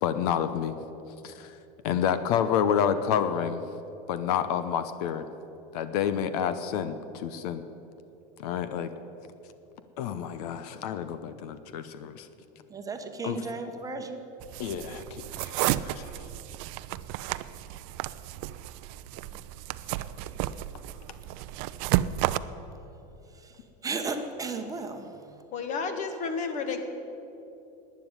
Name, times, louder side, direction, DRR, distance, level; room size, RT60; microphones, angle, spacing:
voice 1, 0.0-0.8 1.2-1.5 1.8-3.6 4.1-5.2 5.7-7.6 8.4-8.9 10.0-12.3 13.2-13.5 14.6-15.5 15.8-16.1, left 8 dB, 70° left, 11 dB, 0.9 m, -29 dB
voice 2, 12.7-14.2 20.2-20.3 23.8-25.1, right 4 dB, 15° right, 5 dB, 1.0 m, -34 dB
sound 1, 14.4-22.4, right 15 dB, 55° right, 0.5 m, -32 dB
voice 3, 25.5-26.8, left 5 dB, 35° left, 7 dB, 1.6 m, -31 dB
12.0 x 9.5 x 9.7 m, 3.0 s
supercardioid pair, 135°, 21 cm